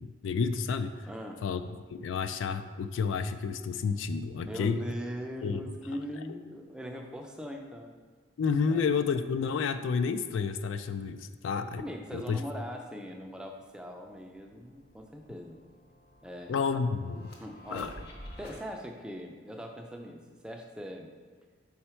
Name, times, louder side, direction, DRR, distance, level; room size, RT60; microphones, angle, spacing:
voice 1, 0.0-0.9 1.4-1.6 1.9-4.8 5.4-5.6 8.4-11.8 12.1-12.4 16.5-17.3 17.7-17.9, left 5 dB, 70° left, 9 dB, 0.3 m, -30 dB
voice 2, 1.1-1.4 4.4-7.9 8.7-8.8 11.8-15.6 16.2-16.6 17.4-17.9 18.4-21.1, equal, 5° right, 2 dB, 0.4 m, -41 dB
sound 1, 13.2-13.3 13.6-18.6, equal, 55° left, 0.9 m, -51 dB
5.7 x 4.3 x 4.4 m, 1.6 s
head